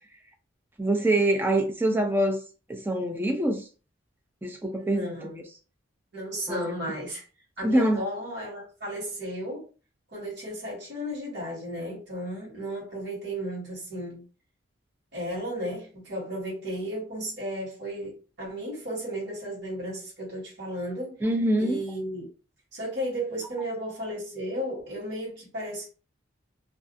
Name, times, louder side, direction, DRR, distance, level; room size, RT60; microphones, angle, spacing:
voice 1, 0.8-2.4 2.7-3.7 4.4-5.4 6.5-6.8 7.6-8.0 21.2-21.8, right 1 dB, 10° right, 0.4 m, -25 dB
voice 2, 4.8-5.4 6.1-7.2 7.6-9.7 10.1-14.2 15.1-21.2 21.6-22.3 22.7-25.9, equal, 55° right, 1.3 m, -34 dB
2.4 x 2.3 x 2.5 m
head